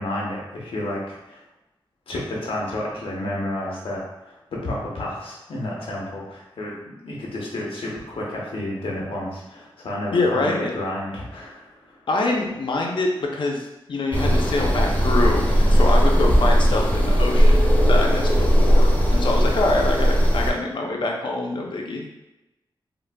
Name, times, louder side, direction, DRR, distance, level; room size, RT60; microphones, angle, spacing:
voice 1, 0.0-1.4 2.1-12.0, left 1 dB, 90° left, -3 dB, 0.8 m, -31 dB
voice 2, 10.1-10.8 12.1-22.1, left 2 dB, 65° left, 0 dB, 0.5 m, -25 dB
sound 1, 14.1-20.5, equal, 15° left, 0.6 m, -18 dB
3.8 x 2.5 x 2.2 m, 0.96 s
wide cardioid pair, 140°, 9 cm